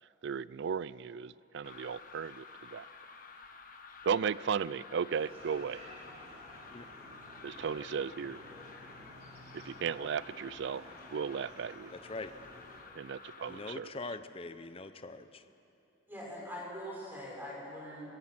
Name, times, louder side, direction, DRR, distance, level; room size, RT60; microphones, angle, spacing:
voice 1, 0.2-2.8 4.0-5.8 7.4-8.4 9.5-10.8 11.1-11.9 12.9-13.9, right 6 dB, 60° right, 20 dB, 0.4 m, -35 dB
sound 1, 1.6-13.7, left 5 dB, 45° left, 1.4 m, -52 dB
sound 2, 5.1-12.8, equal, 35° right, 3.4 m, -53 dB
voice 2, 13.5-15.4, left 3 dB, 30° left, 10 dB, 0.7 m, -42 dB
voice 3, 16.1-18.1, equal, 10° right, -5 dB, 6.4 m, -42 dB
24.0 x 21.0 x 6.0 m, 2.9 s
head